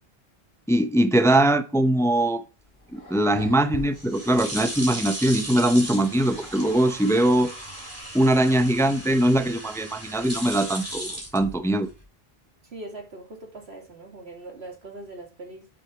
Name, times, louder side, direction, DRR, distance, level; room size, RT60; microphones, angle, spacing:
voice 1, 0.7-2.4 2.9-7.5 8.1-11.9, right 1 dB, 5° left, 0.6 m, -21 dB
sound 1, 2.6-8.0, left 3 dB, 55° left, 2.3 m, -46 dB
sound 2, 3.6-12.0, right 1 dB, 55° right, 3.7 m, -36 dB
voice 2, 12.7-15.7, right 2 dB, 90° right, 2.8 m, -41 dB
8.5 x 6.3 x 4.5 m
omnidirectional pair, 1.0 m